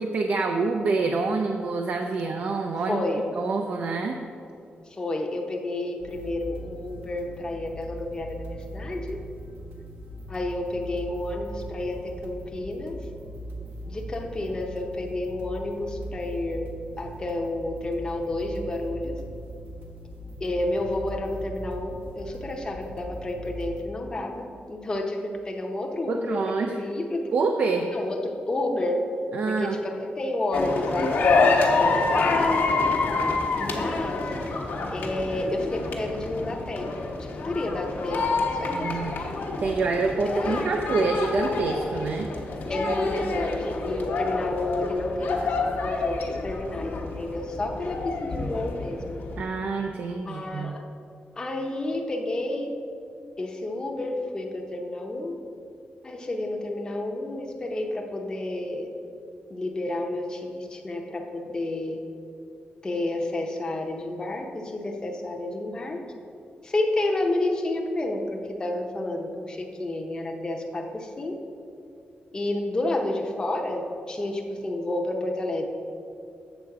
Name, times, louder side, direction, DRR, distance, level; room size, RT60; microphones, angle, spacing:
voice 1, 0.1-3.0 3.4-4.2 26.1-26.8 27.3-27.9 29.3-29.8 38.7-39.1 39.6-42.3 49.4-50.8, right 4 dB, 55° right, 4 dB, 0.4 m, -26 dB
voice 2, 2.9-3.3 5.0-9.2 10.3-13.0 13.9-16.7 17.0-19.1 20.4-27.3 27.9-29.0 29.5-32.4 33.6-34.3 34.9-37.1 37.4-39.1 40.3-40.7 42.7-49.2 50.3-50.8 51.4-52.7 53.4-55.4 56.0-58.9 59.5-62.0 62.8-66.0 66.6-71.4 72.3-75.6, left 1 dB, 20° left, 1 dB, 0.7 m, -30 dB
sound 1, 6.0-23.8, right 1 dB, 85° right, 1.3 m, -40 dB
sound 2, 30.5-49.4, left 3 dB, 75° left, 1.0 m, -27 dB
7.9 x 6.6 x 4.7 m, 2.5 s
wide cardioid pair, 170°, 4 cm